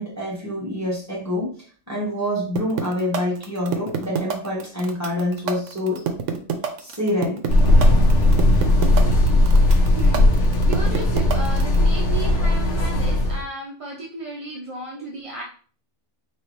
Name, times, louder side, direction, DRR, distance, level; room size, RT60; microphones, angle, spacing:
voice 1, 0.0-1.5 1.9-6.0 6.8-7.4, left 1 dB, 15° right, -4 dB, 1.5 m, -26 dB
sound 1, 2.6-11.8, right 8 dB, 75° right, 1.0 m, -26 dB
sound 2, 7.5-13.4, left 1 dB, 65° left, 1.1 m, -17 dB
voice 2, 9.9-10.3 10.7-15.4, right 2 dB, 40° right, -2 dB, 0.5 m, -34 dB
4.6 x 2.8 x 3.2 m, 0.43 s
omnidirectional pair, 1.3 m